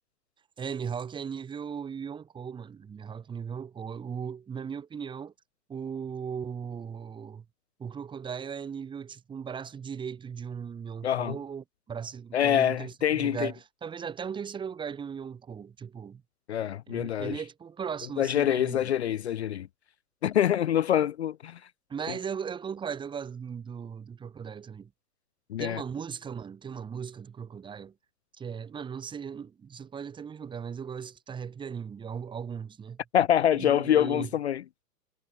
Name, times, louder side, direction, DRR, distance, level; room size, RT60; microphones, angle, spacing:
voice 1, 0.6-5.3 5.7-7.4 7.8-16.2 16.9-18.9 21.9-24.9 25.6-27.9 28.4-33.0 33.5-34.3, right 7 dB, 10° right, 1.6 m, -37 dB
voice 2, 11.0-11.4 12.3-13.5 16.5-17.4 18.2-19.7 20.2-21.6 25.5-25.8 33.1-34.6, left 10 dB, 45° left, 0.5 m, -25 dB
figure-of-eight pair, 125°, 49 cm